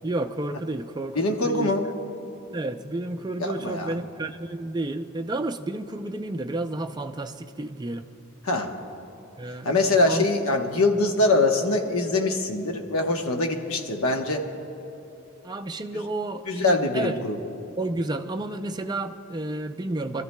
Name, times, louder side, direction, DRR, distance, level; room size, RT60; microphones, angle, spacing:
voice 1, 0.0-1.8 2.5-8.1 9.4-9.7 10.0-10.3 15.4-17.5 17.8-20.2, right 2 dB, 20° right, 7 dB, 0.4 m, -31 dB
voice 2, 1.1-1.9 3.4-3.9 8.4-8.7 9.6-14.5 16.5-17.4, left 2 dB, 70° left, 3 dB, 1.0 m, -23 dB
26.5 x 13.5 x 2.2 m, 2.9 s
head